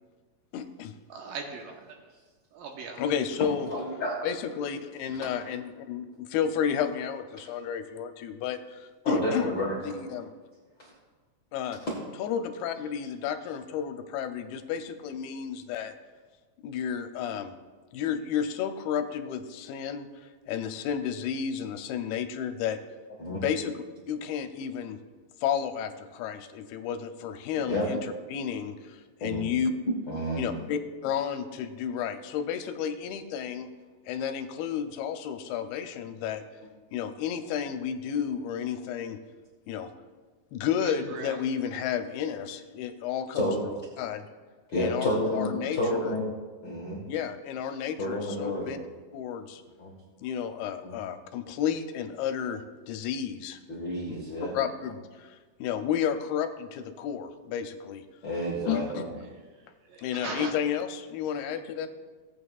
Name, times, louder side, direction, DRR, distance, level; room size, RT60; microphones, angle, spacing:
voice 1, 0.5-0.9 3.0-3.7 4.2-9.5 9.8-10.4 11.5-11.8 12.2-15.9 16.6-17.5 17.9-22.8 23.3-25.0 25.4-29.7 30.4-33.7 34.1-36.4 36.9-39.2 39.7-39.9 40.5-43.5 44.0-44.3 44.7-46.2 47.1-48.8 49.1-49.6 50.2-53.6 54.5-58.1 58.7-59.0 60.0-61.9, left 8 dB, 85° left, 8 dB, 2.6 m, -32 dB
voice 2, 1.1-1.7 2.6-3.0 40.8-41.3 59.9-60.5, right 5 dB, 75° right, 2 dB, 2.5 m, -38 dB
voice 3, 3.7-4.2 9.0-9.7 10.8-10.9 23.2-23.4 27.7-27.9 29.2-29.4 30.1-30.6 43.3-43.7 44.7-46.3 46.6-47.0 48.0-48.7 49.8-49.9 50.8-50.9 53.7-54.5 58.2-58.8, equal, 60° left, -4 dB, 1.2 m, -30 dB
17.5 x 8.5 x 2.4 m, 1.4 s
omnidirectional pair, 4.4 m